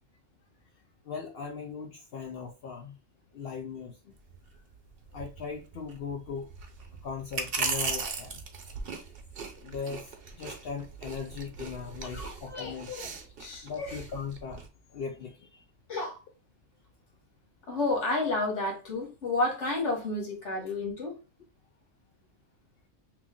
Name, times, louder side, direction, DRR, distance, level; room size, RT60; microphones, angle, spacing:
voice 1, 1.1-2.9 3.3-4.0 5.1-6.5 7.0-8.4 9.6-13.1 13.6-14.6 14.9-15.6, left 6 dB, 65° left, 0.7 m, -39 dB
sound 1, 4.1-14.7, right 4 dB, 60° right, 0.9 m, -38 dB
voice 2, 12.1-12.8 13.4-14.0 15.9-16.2 17.7-21.2, left 2 dB, 90° left, 1.6 m, -31 dB
3.1 x 2.5 x 3.5 m
omnidirectional pair, 1.2 m